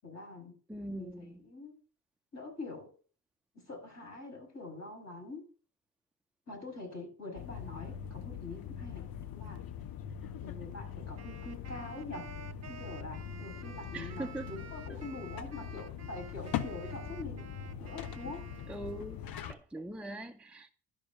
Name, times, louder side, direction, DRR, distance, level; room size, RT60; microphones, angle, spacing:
voice 1, 0.0-0.5 0.9-1.8 2.3-2.9 3.5-5.5 6.5-9.0 9.3-9.6 10.4-12.3 12.7-17.5 17.8-18.5, left 2 dB, 35° left, 0 dB, 6.2 m, -45 dB
voice 2, 0.7-1.4 13.9-14.5 14.9-15.0 18.7-19.2 19.5-20.7, right 1 dB, 5° right, 4 dB, 0.6 m, -41 dB
sound 1, 7.4-19.5, left 9 dB, 50° left, 1.0 m, -42 dB
Wind instrument woodwind instrument, 11.2-19.3, right 7 dB, 35° right, 1.0 m, -51 dB
11.5 x 5.5 x 5.9 m, 0.39 s
figure-of-eight pair, 50°, 45 cm